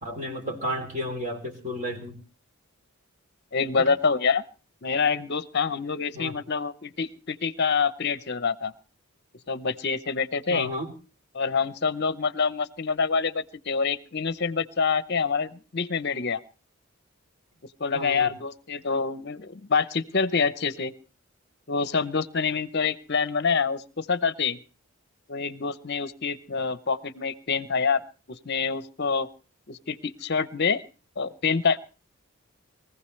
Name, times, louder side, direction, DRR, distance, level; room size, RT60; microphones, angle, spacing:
voice 1, 0.0-2.2 6.1-6.3 10.5-10.9 17.9-18.3, equal, 35° right, 3 dB, 3.1 m, -32 dB
voice 2, 3.5-4.4 4.8-8.7 9.5-10.7 11.3-16.4 17.8-20.9 21.7-24.6 25.3-28.0 28.3-29.3 29.7-30.8 31.2-31.8, left 5 dB, 50° left, 15 dB, 0.7 m, -26 dB
23.5 x 15.5 x 3.2 m, 0.35 s
head